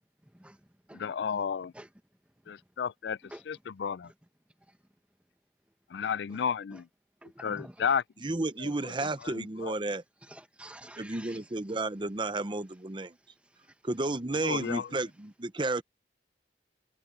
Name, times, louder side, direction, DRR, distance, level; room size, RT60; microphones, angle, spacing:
voice 1, 0.2-1.1 1.7-1.9 2.4-2.5 3.2-3.4 4.0-4.1 4.7-4.8 6.3-6.4 6.7-6.8 7.2-7.9 9.0-9.3 10.2-11.8 13.4-13.8, right 1 dB, 5° right, 1.2 m, -50 dB
voice 2, 0.9-1.7 2.5-3.2 3.5-4.1 5.9-6.9 7.4-8.0 8.6-9.8 14.4-14.9, left 7 dB, 75° left, 0.4 m, -33 dB
voice 3, 8.2-10.0 11.0-13.1 13.8-15.8, right 2 dB, 25° right, 0.7 m, -32 dB
head